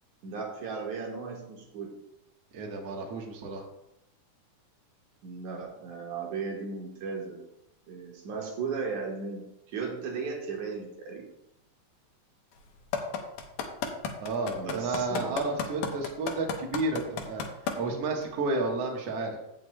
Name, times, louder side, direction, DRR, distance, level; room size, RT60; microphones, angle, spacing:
voice 1, 0.2-2.0 5.2-7.4 7.9-11.2 14.6-15.5, right 5 dB, 75° right, -1 dB, 2.7 m, -36 dB
voice 2, 2.5-3.6 14.2-17.4 17.8-19.4, right 3 dB, 60° right, 0 dB, 2.2 m, -31 dB
sound 1, 12.9-17.7 18.2-18.3, left 7 dB, 85° left, 2.5 m, -31 dB
16.0 x 6.4 x 2.2 m, 0.83 s
omnidirectional pair, 3.5 m